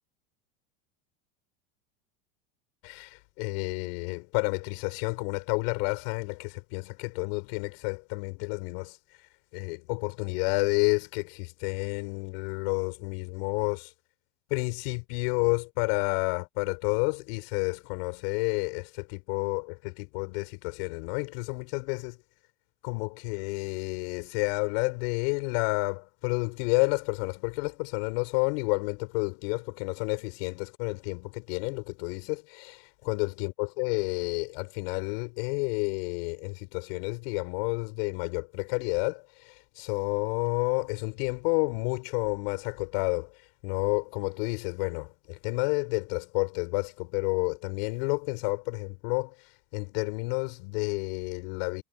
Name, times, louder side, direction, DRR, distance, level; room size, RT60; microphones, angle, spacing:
voice 1, 2.8-9.0 9.5-13.9 14.5-22.2 22.8-43.3 43.6-49.3 49.7-51.8, left 33 dB, 65° left, 5.0 m, -30 dB
supercardioid pair, 145°, 30 cm